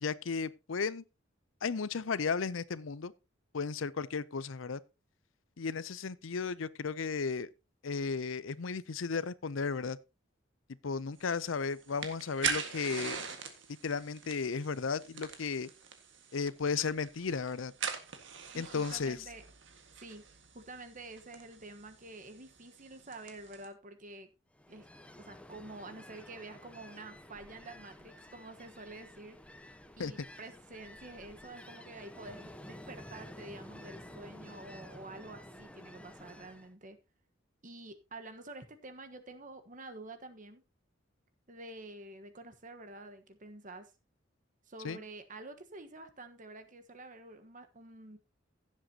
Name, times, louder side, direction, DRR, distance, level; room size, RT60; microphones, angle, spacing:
voice 1, 0.0-1.0 1.6-3.1 3.5-4.8 5.6-7.5 7.8-10.0 10.8-13.2 13.8-15.7 16.3-17.7 18.6-19.2 30.0-30.1 44.8-45.0, left 5 dB, 80° left, 0.6 m, -34 dB
sound 1, 11.2-23.7, right 6 dB, 65° right, 1.8 m, -43 dB
voice 2, 18.5-19.4 20.0-20.2 20.5-24.3 24.7-24.9 25.2-29.4 30.0-37.0 37.6-40.6 41.5-43.9 44.7-48.2, right 2 dB, 40° right, 1.3 m, -48 dB
Ocean, 24.5-36.7, left 1 dB, 5° left, 0.8 m, -51 dB
16.5 x 7.6 x 2.9 m
head